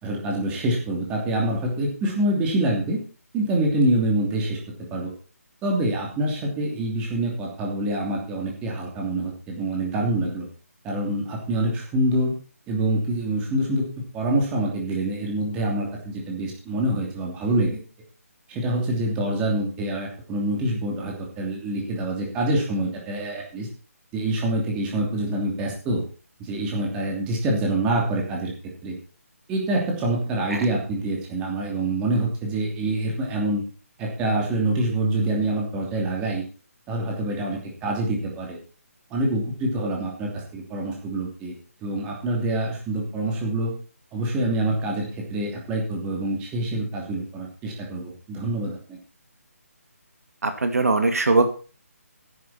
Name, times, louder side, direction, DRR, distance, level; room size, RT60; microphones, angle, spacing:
voice 1, 0.0-3.0 3.3-5.1 5.6-10.5 10.8-12.3 12.7-13.8 14.1-17.8 18.5-23.7 24.1-26.0 26.4-28.5 28.8-29.0 29.5-33.6 34.0-36.4 36.9-38.6 39.1-41.5 41.8-43.7 44.1-49.0, right 1 dB, 10° right, -1 dB, 2.9 m, -26 dB
voice 2, 50.4-51.5, right 3 dB, 75° right, 7 dB, 2.3 m, -21 dB
13.5 x 9.9 x 4.3 m, 0.36 s
hypercardioid pair, 165°, 8 cm